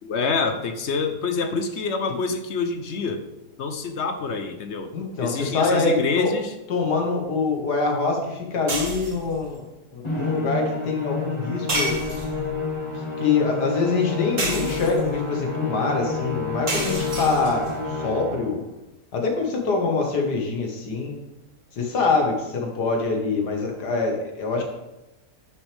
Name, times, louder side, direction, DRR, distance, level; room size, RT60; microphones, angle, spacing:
voice 1, 0.0-3.2 3.6-6.5 24.6-24.7, left 4 dB, 60° left, 8 dB, 0.7 m, -27 dB
voice 2, 4.9-6.3 6.7-9.6 9.9-12.0 13.2-18.6 19.1-21.2 21.7-24.6, left 4 dB, 75° left, 1 dB, 2.1 m, -24 dB
sound 1, 8.7-9.3 11.7-12.5 14.4-15.2 16.7-17.7, right 1 dB, 50° right, 2.2 m, -29 dB
Musical instrument, 10.0-18.5, left 3 dB, 15° left, 1.9 m, -29 dB
10.5 x 6.1 x 3.4 m, 0.96 s
omnidirectional pair, 1.8 m